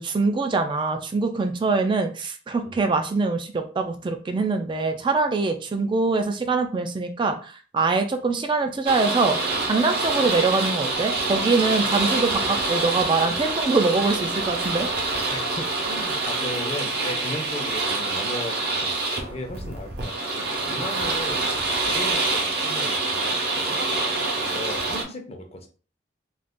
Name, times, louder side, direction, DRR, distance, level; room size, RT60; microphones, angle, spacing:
voice 1, 0.0-9.4 9.7-14.9, right 3 dB, 25° right, 5 dB, 0.3 m, -23 dB
sound 1, 8.9-25.0, right 3 dB, 60° right, 0.8 m, -26 dB
voice 2, 15.3-21.4 21.8-23.8 24.3-25.7, left 1 dB, 35° left, 3 dB, 0.6 m, -36 dB
2.5 x 2.4 x 3.5 m, 0.38 s
head